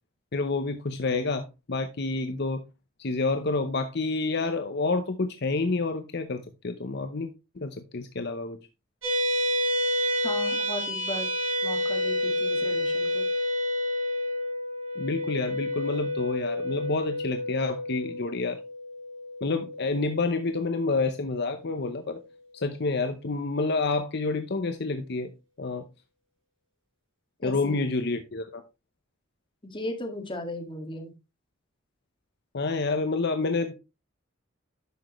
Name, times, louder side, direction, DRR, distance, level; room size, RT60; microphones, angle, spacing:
voice 1, 0.3-2.6 3.0-7.3 7.6-8.6 15.0-18.6 19.4-22.2 22.5-25.3 25.6-25.9 27.4-28.6 32.5-33.7, left 3 dB, 55° left, 0.8 m, -28 dB
sound 1, 9.0-21.7, left 1 dB, 80° right, 4.9 m, -29 dB
voice 2, 10.2-11.3 11.6-13.3 27.4-27.8 29.6-31.1, left 1 dB, 25° left, 1.9 m, -36 dB
11.0 x 6.4 x 3.1 m
head